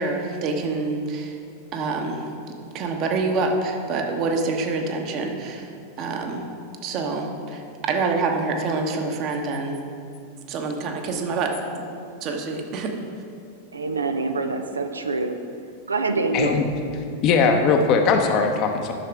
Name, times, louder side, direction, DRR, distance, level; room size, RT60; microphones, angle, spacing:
voice 1, 0.0-1.4 1.7-2.3 2.7-5.7 6.0-6.5 6.8-9.8 10.5-11.5 12.2-12.9, right 3 dB, 40° right, 3 dB, 1.1 m, -26 dB
voice 2, 13.7-15.4 15.9-16.6, right 3 dB, 75° right, 7 dB, 0.5 m, -25 dB
voice 3, 16.3-16.6 17.2-18.9, left 5 dB, 40° left, 4 dB, 0.8 m, -19 dB
11.0 x 6.7 x 3.5 m, 2.4 s
figure-of-eight pair, 90°, 0 cm